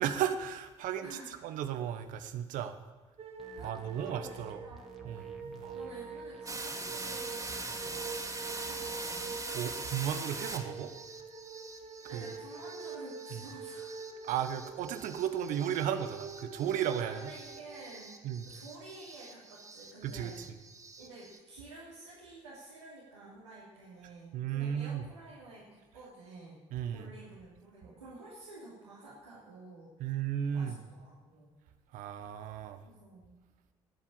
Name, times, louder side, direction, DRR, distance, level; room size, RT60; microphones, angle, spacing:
voice 1, 0.0-2.8 3.6-4.6 5.0-5.8 9.5-10.9 12.1-12.3 13.3-13.4 14.2-17.3 18.2-18.5 20.0-20.3 24.3-25.0 26.7-27.1 30.0-30.8 31.9-32.8, right 9 dB, 60° right, 9 dB, 1.2 m, -34 dB
voice 2, 1.0-1.4 3.5-4.3 4.6-4.9 5.7-8.0 8.6-9.4 12.1-14.0 17.0-18.2 18.5-20.4 21.0-26.6 26.9-30.1 30.5-31.5 32.8-33.3, right 2 dB, 85° right, -8 dB, 2.9 m, -50 dB
sound 1, 3.2-18.3, right 5 dB, 45° right, 1.9 m, -45 dB
sound 2, 3.4-9.3, equal, ahead, 2.3 m, -55 dB
sound 3, 6.5-21.4, right 2 dB, 20° right, 2.7 m, -43 dB
20.0 x 7.4 x 7.2 m, 1.4 s
figure-of-eight pair, 50°, 15 cm